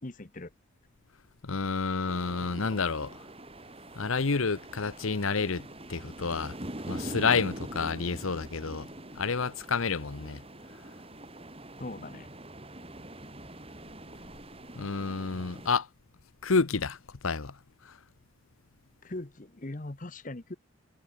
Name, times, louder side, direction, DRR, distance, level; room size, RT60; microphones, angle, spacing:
voice 1, 0.0-0.5 11.8-12.3 19.0-20.6, left 2 dB, 40° left, 1.0 m, -40 dB
voice 2, 1.4-3.2 4.0-5.6 5.9-6.5 6.9-8.9 9.2-10.4 14.8-15.9 16.4-17.0 17.2-17.5, left 4 dB, 85° left, 1.0 m, -29 dB
sound 1, 2.1-15.7, right 1 dB, 30° right, 4.0 m, -44 dB
head